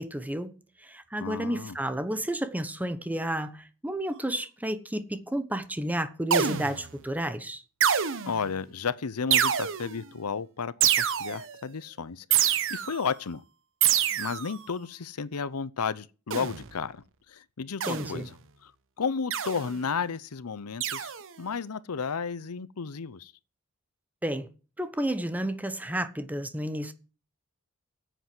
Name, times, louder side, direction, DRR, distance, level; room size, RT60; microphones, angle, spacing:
voice 1, 0.0-7.6 17.9-18.3 24.2-24.5 24.8-26.9, right 1 dB, 5° right, 1.1 m, -31 dB
voice 2, 1.2-1.7 8.3-13.4 14.1-18.3 18.6-18.7 19.0-23.3, left 5 dB, 85° left, 0.7 m, -33 dB
sound 1, 6.3-6.9 7.8-8.5 9.3-10.0 10.8-11.5 12.3-13.1 13.8-14.6 16.3-16.7 17.8-18.3 19.3-19.8 20.8-21.3, right 9 dB, 60° right, 1.2 m, -26 dB
10.0 x 8.1 x 7.8 m
head